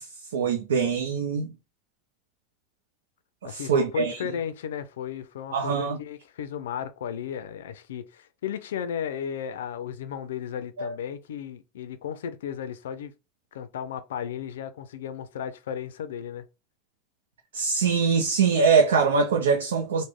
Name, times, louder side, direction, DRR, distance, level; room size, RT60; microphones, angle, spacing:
voice 1, 0.0-1.5 3.4-4.2 5.5-6.0 10.8-10.9 17.5-20.0, right 5 dB, 85° right, 0.5 m, -23 dB
voice 2, 3.4-13.1 13.5-16.5, left 8 dB, 80° left, 0.4 m, -34 dB
3.1 x 2.1 x 3.5 m
hypercardioid pair, 95°, 0 cm